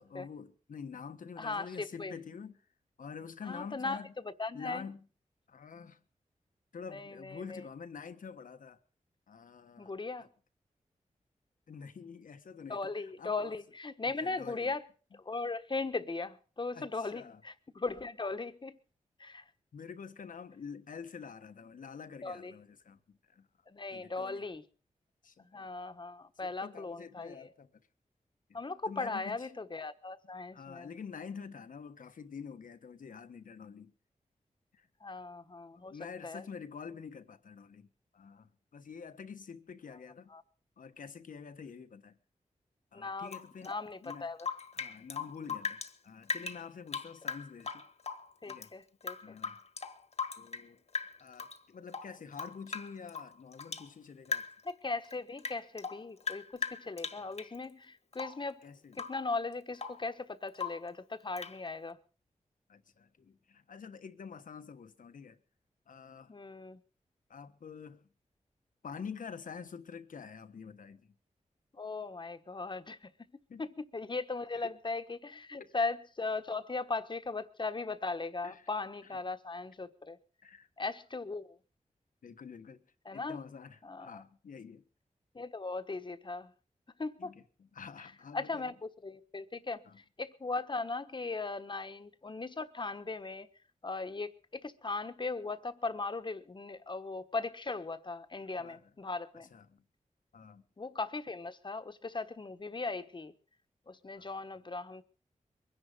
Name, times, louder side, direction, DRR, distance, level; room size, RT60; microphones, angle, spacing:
voice 1, 0.0-2.6 3.0-4.1 4.5-5.0 5.5-6.0 6.7-8.8 9.3-9.9 10.2-10.3 11.7-13.5 14.2-14.7 16.7-17.4 19.7-23.5 23.9-24.5 25.2-25.7 26.4-27.7 28.9-29.5 30.5-33.9 34.7-34.9 35.7-37.9 38.1-40.3 40.8-42.2 42.9-43.7 44.0-44.3 44.7-47.8 48.5-48.8 49.2-49.6 50.4-50.8 51.2-54.5 57.2-57.3 58.6-59.0 62.7-65.4 65.9-66.3 67.3-68.1 68.8-71.1 73.5-73.6 74.5-74.7 75.6-75.7 78.4-78.7 79.1-79.2 80.4-80.7 82.2-82.8 83.1-84.8 87.2-88.7 89.8-90.0 98.6-98.8 99.3-99.8 100.3-100.6 104.2-104.3, left 6 dB, 80° left, 1.4 m, -47 dB
voice 2, 1.4-2.1 3.4-4.0 4.2-4.9 6.9-7.6 9.8-10.3 12.7-14.9 15.1-18.8 19.2-19.5 22.2-22.5 23.7-24.6 25.4-27.5 28.5-30.9 35.0-36.0 36.2-36.4 40.3-40.4 42.9-44.5 48.4-49.4 54.6-58.6 58.9-62.0 66.3-66.8 71.7-73.1 73.6-80.2 80.8-81.6 83.0-83.4 83.8-84.2 85.3-86.5 87.0-87.3 88.3-93.5 93.8-99.5 100.8-103.3 103.9-105.0, left 3 dB, 35° left, 1.2 m, -38 dB
Rain / Drip, 43.3-45.9 46.2-48.7 49.0-50.7 50.9-51.6 51.9-53.9 54.3-54.7 55.0-57.6 58.1-58.5 58.9-59.2 59.5-60.1 60.5-60.9 61.4-61.6, left 5 dB, 55° left, 1.5 m, -39 dB
23.0 x 10.5 x 5.2 m
wide cardioid pair, 90°, 14 cm